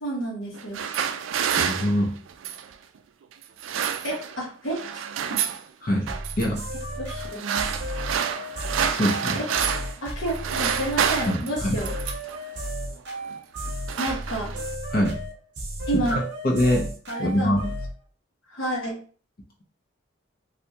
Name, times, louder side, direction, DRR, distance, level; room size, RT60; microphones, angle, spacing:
voice 1, 0.0-0.8 4.0-4.9 5.3-5.5 7.0-7.4 9.3-9.5 10.0-11.9 14.0-14.5 15.9-16.2 17.1-17.5 18.5-19.0, right 1 dB, 85° left, -4 dB, 1.1 m, -30 dB
sound 1, 0.5-2.7 3.4-4.5 4.7-5.6 6.1-6.5 7.2-10.0 10.3-12.4 13.1-13.4 13.7-14.7, right 7 dB, 85° right, 0.3 m, -28 dB
voice 2, 1.6-2.1 5.8-6.0 6.4-6.6 8.9-9.4 11.3-11.8 14.9-15.2 16.1-16.9 17.2-17.6, left 1 dB, 50° left, -1 dB, 0.7 m, -23 dB
sound 2, 6.1-17.9, equal, 60° right, 0.9 m, -33 dB
3.3 x 2.6 x 2.7 m, 0.40 s
head